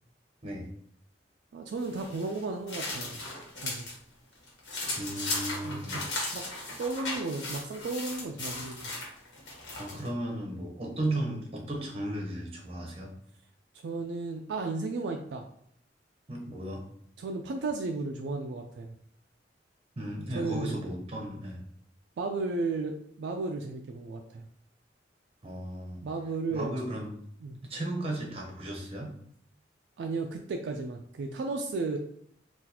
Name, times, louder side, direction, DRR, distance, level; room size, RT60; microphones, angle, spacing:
voice 1, 1.5-3.2 3.6-3.9 5.6-6.0 6.3-6.5 6.8-8.9 11.0-11.1 13.8-15.5 17.2-18.9 20.3-20.8 22.2-24.4 26.0-26.7 27.4-27.6 30.0-32.0, right 3 dB, 70° right, 3 dB, 0.3 m, -34 dB
sound 1, 1.8-4.0 4.3-10.1, left 2 dB, 85° left, 1.2 m, -37 dB
voice 2, 5.0-6.0 9.8-13.1 16.3-16.8 20.0-21.6 25.4-26.0 26.5-27.1 27.7-29.1, right 1 dB, 35° right, 0 dB, 0.8 m, -35 dB
3.8 x 2.4 x 2.8 m, 0.65 s
head